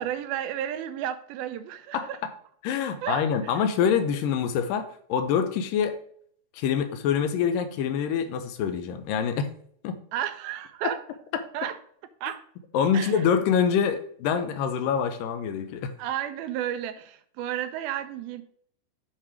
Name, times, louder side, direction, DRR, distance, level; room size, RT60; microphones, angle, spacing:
voice 1, 0.0-2.2 3.0-3.5 10.1-11.0 11.5-11.8 12.2-12.4 12.9-13.2 16.0-18.4, right 10 dB, 85° right, 10 dB, 2.2 m, -32 dB
voice 2, 2.6-6.0 6.5-9.5 9.8-10.0 12.7-15.9, left 7 dB, 75° left, 9 dB, 2.1 m, -25 dB
7.5 x 4.6 x 4.9 m, 0.63 s
omnidirectional pair, 4.6 m